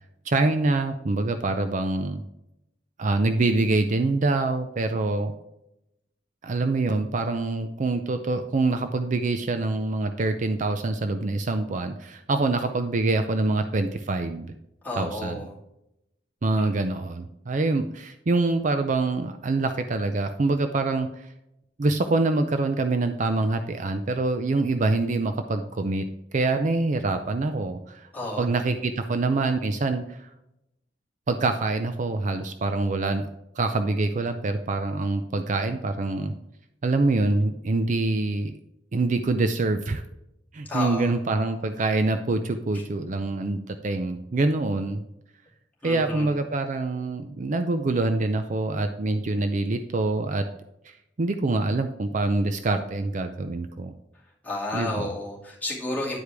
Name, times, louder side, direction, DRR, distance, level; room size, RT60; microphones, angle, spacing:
voice 1, 0.3-2.2 3.0-5.3 6.4-14.5 15.0-15.5 16.4-21.3 21.8-26.0 26.3-28.1 28.4-30.3 31.3-33.3 33.6-36.3 36.8-38.5 38.9-40.0 40.5-45.0 45.8-50.5 51.2-53.9 54.7-55.1, right 2 dB, 45° right, 7 dB, 0.5 m, -25 dB
voice 2, 14.8-15.5 16.6-16.7 28.1-28.5 40.7-41.1 45.8-46.3 54.4-56.2, left 2 dB, 10° left, -6 dB, 2.4 m, -31 dB
9.6 x 4.9 x 3.4 m, 0.84 s
head